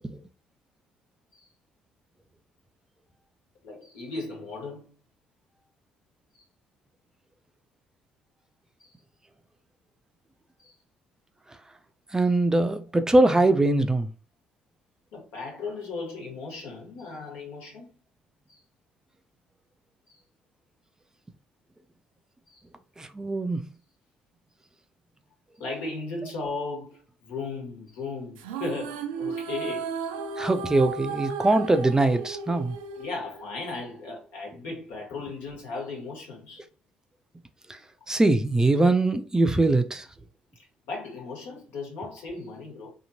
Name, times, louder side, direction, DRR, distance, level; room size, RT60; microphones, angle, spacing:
voice 1, 3.6-4.9 6.3-6.4 10.6-10.7 15.1-17.9 18.5-18.6 20.1-20.2 22.5-22.6 25.6-29.9 33.0-36.6 40.9-42.9, left 3 dB, 70° left, 1.4 m, -36 dB
voice 2, 12.1-14.1 23.0-23.7 30.4-32.8 37.7-37.8 38.1-40.1, right 2 dB, 15° right, 0.5 m, -22 dB
sound 1, 28.4-33.8, right 5 dB, 80° right, 0.4 m, -35 dB
2.8 x 2.5 x 2.7 m
hypercardioid pair, 50°, 4 cm